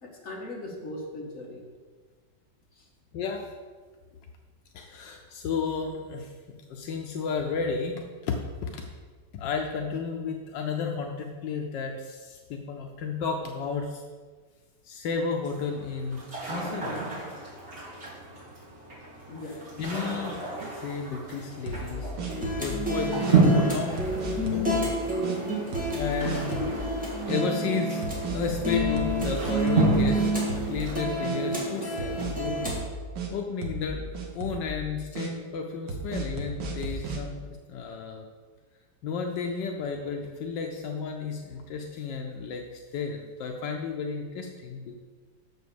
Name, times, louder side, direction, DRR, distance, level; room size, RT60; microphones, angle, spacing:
voice 1, 0.0-1.6 2.8-2.9 19.3-19.6 36.9-37.0, left 1 dB, 45° left, -2 dB, 2.1 m, -39 dB
voice 2, 3.1-3.5 4.7-6.3 6.7-8.9 9.3-14.0 14.8-16.2 16.5-17.0 19.8-20.4 20.7-22.1 22.6-24.1 24.5-24.9 25.9-26.6 27.2-28.1 28.3-32.7 33.3-38.3 39.0-45.0, left 5 dB, 80° left, 2 dB, 1.4 m, -32 dB
sound 1, 15.4-32.2, right 3 dB, 40° right, 3.6 m, -31 dB
sound 2, 21.7-22.8 23.2-23.4 24.0-24.7 25.2-25.4 25.7-26.0 26.2-26.8 27.3-27.4 28.0-29.9 30.2-30.9 31.2-31.4 32.0-33.3 33.6-33.9 34.1-34.7 35.2-35.3 35.9-37.2, right 3 dB, 85° right, 1.8 m, -34 dB
sound 3, 22.3-32.8, right 1 dB, 5° right, 2.0 m, -30 dB
6.9 x 6.4 x 6.9 m, 1.5 s
omnidirectional pair, 1.9 m